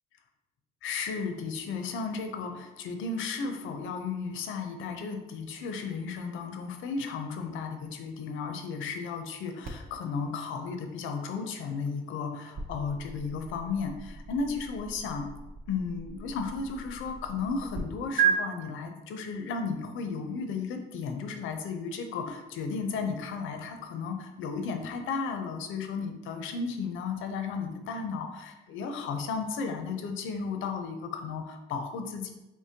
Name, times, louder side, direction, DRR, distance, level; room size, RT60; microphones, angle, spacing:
voice 1, 0.8-15.3 15.7-32.3, left 5 dB, 85° left, 5 dB, 0.5 m, -34 dB
sound 1, 9.6-17.8 18.2-18.3, right 8 dB, 50° right, 0.5 m, -35 dB
3.6 x 3.0 x 2.8 m, 1.0 s
cardioid pair, 90°, 20 cm